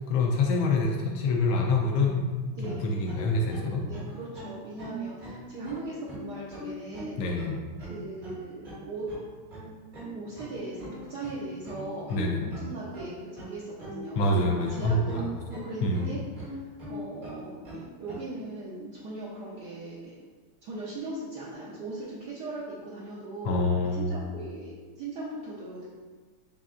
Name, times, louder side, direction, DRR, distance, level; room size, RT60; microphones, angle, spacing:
voice 1, 0.1-2.3 2.6-3.9 7.2-7.6 12.1-12.5 14.2-15.2 15.8-16.0 23.4-24.1, left 2 dB, 75° left, 1 dB, 1.3 m, -26 dB
sound 1, 2.6-18.2, right 1 dB, 40° right, 0.7 m, -41 dB
voice 2, 2.6-3.1 3.8-7.2 7.8-9.2 10.1-14.3 14.7-20.1 20.6-23.6 23.9-25.9, right 2 dB, 70° right, -7 dB, 1.1 m, -39 dB
5.5 x 3.4 x 2.4 m, 1.4 s
omnidirectional pair, 2.3 m